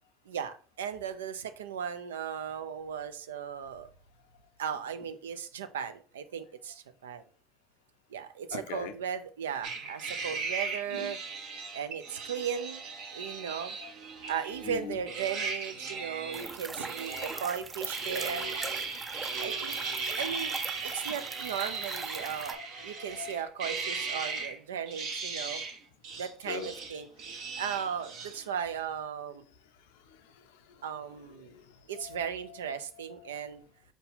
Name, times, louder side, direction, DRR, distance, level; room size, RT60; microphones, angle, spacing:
voice 1, 0.3-3.9 4.6-7.2 8.1-11.2 11.7-12.8 13.1-13.8 14.3-18.9 19.4-19.7 20.2-20.6 20.9-25.6 26.2-27.1 27.6-29.4 30.8-31.5 31.9-33.6, right 8 dB, 85° right, 0.4 m, -36 dB
voice 2, 8.5-8.9 10.9-11.2 13.1-13.4 13.8-13.9 14.6-15.1 15.8-16.5 17.1-17.3 18.3-18.7 19.2-19.5 20.1-20.2 22.6-22.7 23.0-23.4 26.4-26.7 29.9-30.8 31.1-32.6 32.9-33.4, left 7 dB, 75° left, 0.5 m, -45 dB
sound 1, 9.6-14.8 15.1-17.5 17.9-24.5 24.9-25.8 26.0-28.4, right 4 dB, 70° right, 1.1 m, -37 dB
sound 2, 16.3-22.5, right 3 dB, 25° right, 0.5 m, -41 dB
4.6 x 2.7 x 4.0 m
hypercardioid pair, 70°, 0 cm